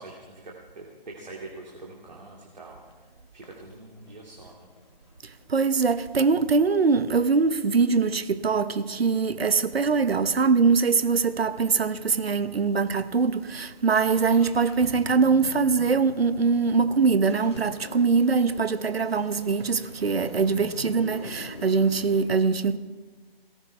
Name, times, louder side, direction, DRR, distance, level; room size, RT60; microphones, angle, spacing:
voice 1, 0.0-4.7, right 2 dB, 45° right, 2.3 m, -44 dB
sound 1, 2.9-3.0 3.4-6.1 6.7-6.8 7.1-7.3 7.7-11.4 11.6-11.7 11.9-12.0 12.6-12.8 13.1-22.2, left 2 dB, 25° left, 1.6 m, -45 dB
voice 2, 5.2-22.8, right 5 dB, 80° right, 0.9 m, -23 dB
20.0 x 17.5 x 3.3 m
hypercardioid pair, 180°, 30 cm